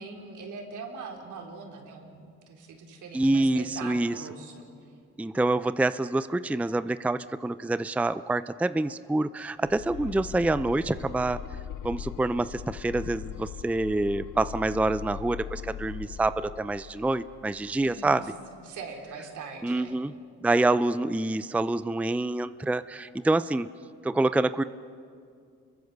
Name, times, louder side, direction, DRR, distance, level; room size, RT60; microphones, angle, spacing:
voice 1, 0.0-4.6 17.8-18.2 18.6-19.9, right 4 dB, 75° right, 1 dB, 4.0 m, -42 dB
voice 2, 3.1-4.1 5.2-11.4 11.8-18.3 19.6-20.1 20.4-23.7 24.0-24.6, right 2 dB, 5° right, 14 dB, 0.5 m, -26 dB
sound 1, 9.6-18.5, left 10 dB, 75° left, 0.9 m, -40 dB
29.0 x 22.0 x 6.9 m, 2.3 s
cardioid pair, 90°, 30 cm